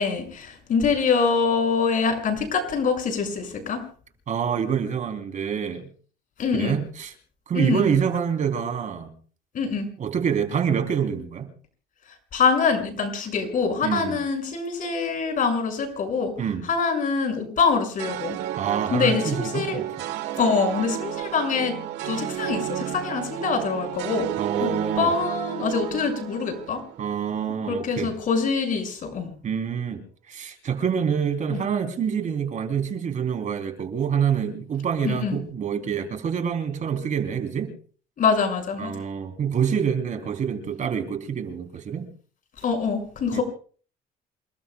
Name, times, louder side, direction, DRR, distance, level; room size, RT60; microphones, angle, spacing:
voice 1, 0.0-3.8 6.4-6.8 7.5-7.9 9.5-9.9 12.3-16.3 16.7-18.4 18.9-19.8 20.4-24.3 24.6-24.7 25.0-26.8 27.7-29.3 31.5-31.6 35.0-35.4 38.2-38.9 42.6-43.4, left 5 dB, 55° left, 6.4 m, -24 dB
voice 2, 4.3-5.9 6.5-7.1 7.5-9.1 10.0-11.5 13.8-14.2 16.4-16.7 18.6-19.9 24.4-25.1 27.0-28.1 29.4-37.7 38.8-42.1 43.3-43.4, right 7 dB, 45° right, 3.6 m, -26 dB
sound 1, 18.0-27.3, right 12 dB, 90° right, 1.4 m, -32 dB
28.5 x 19.5 x 2.3 m
cardioid pair, 110°, 17 cm